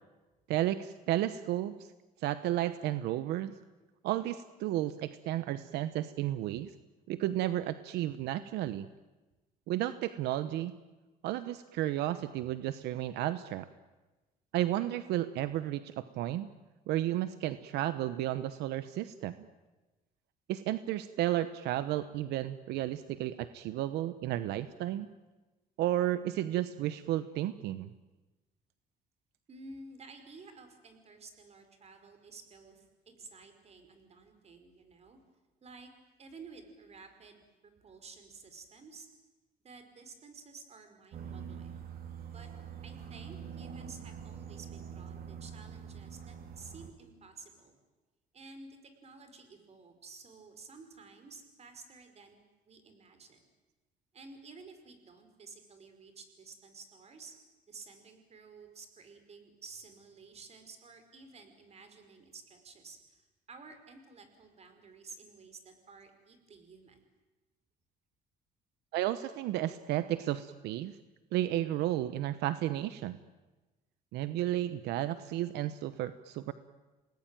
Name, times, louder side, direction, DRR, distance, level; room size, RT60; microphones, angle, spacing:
voice 1, 0.5-1.7 2.2-3.5 4.0-6.7 7.1-8.9 9.7-10.8 11.2-13.7 14.5-16.5 16.9-19.3 20.5-25.1 25.8-27.9 68.9-71.0 71.3-73.2 74.1-76.5, right 13 dB, 85° right, 12 dB, 1.0 m, -33 dB
voice 2, 29.5-35.2 35.6-35.9 36.2-37.4 37.8-39.1 39.6-41.7 42.3-42.5 42.8-47.8 48.3-52.4 52.6-53.5 54.1-57.3 57.7-67.0, right 4 dB, 40° right, 8 dB, 5.0 m, -52 dB
sound 1, 41.1-46.9, right 7 dB, 60° right, 3.1 m, -45 dB
28.0 x 19.5 x 9.0 m, 1.2 s
cardioid pair, 110°, 17 cm